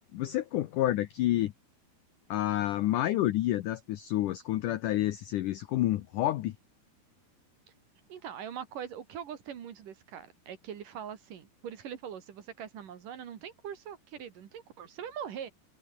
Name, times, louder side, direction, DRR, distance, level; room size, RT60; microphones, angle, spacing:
voice 1, 0.1-1.5 2.3-6.6, left 14 dB, 85° left, 1.8 m, -29 dB
voice 2, 8.1-15.5, right 8 dB, 55° right, 3.2 m, -42 dB
omnidirectional pair, 4.9 m